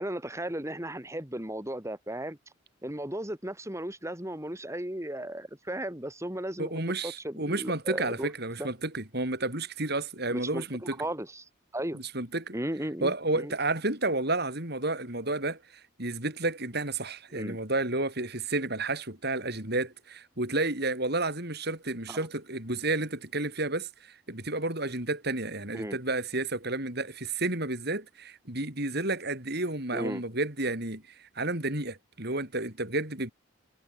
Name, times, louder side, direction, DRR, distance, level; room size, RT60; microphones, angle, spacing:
voice 1, 0.0-2.4 2.8-8.3 8.6-8.7 10.3-10.6 11.0-12.0 12.5-13.5 17.3-17.6 22.1-22.3 25.7-26.0 29.9-30.2, right 1 dB, 15° right, 3.3 m, -35 dB
voice 2, 6.6-11.0 11.9-12.6 13.0-15.6 16.0-33.3, right 2 dB, 50° right, 7.0 m, -31 dB
head